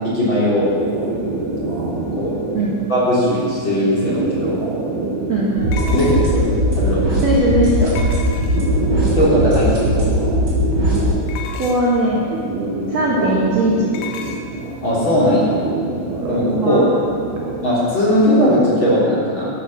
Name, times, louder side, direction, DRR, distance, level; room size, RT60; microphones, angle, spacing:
voice 1, 0.1-0.7 2.2-2.3 2.9-4.6 5.9-6.4 6.7-7.2 9.1-10.1 14.8-15.5 16.3-16.8 17.6-19.5, equal, 30° left, -7 dB, 3.7 m, -18 dB
sound 1, 0.6-18.6, right 2 dB, 75° right, 5.3 m, -27 dB
sound 2, 4.1-4.2 5.7-6.6 8.0-8.9 11.3-12.0 13.9-14.5, left 5 dB, 75° left, 3.2 m, -33 dB
sound 3, 5.6-11.0, equal, 25° right, 3.6 m, -19 dB
voice 2, 7.2-7.9 11.6-12.3 12.9-13.9 16.6-16.9, right 1 dB, 50° right, -6 dB, 2.3 m, -18 dB
12.5 x 12.0 x 7.5 m, 2.3 s
omnidirectional pair, 5.4 m